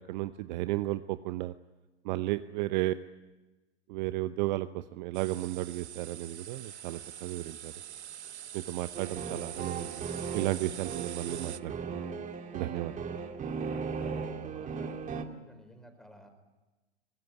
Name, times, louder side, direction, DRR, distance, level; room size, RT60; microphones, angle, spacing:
voice 1, 0.0-1.5 2.0-2.9 3.9-7.7 8.5-12.0 12.5-13.1, right 17 dB, 40° right, 12 dB, 0.9 m, -34 dB
sound 1, 5.1-11.6, right 10 dB, 70° right, 1.0 m, -44 dB
sound 2, 8.9-15.2, right 5 dB, 20° right, 2.3 m, -37 dB
voice 2, 13.6-16.3, equal, ahead, 6 dB, 4.9 m, -54 dB
24.5 x 20.0 x 10.0 m, 1.1 s
figure-of-eight pair, 105°, 35 cm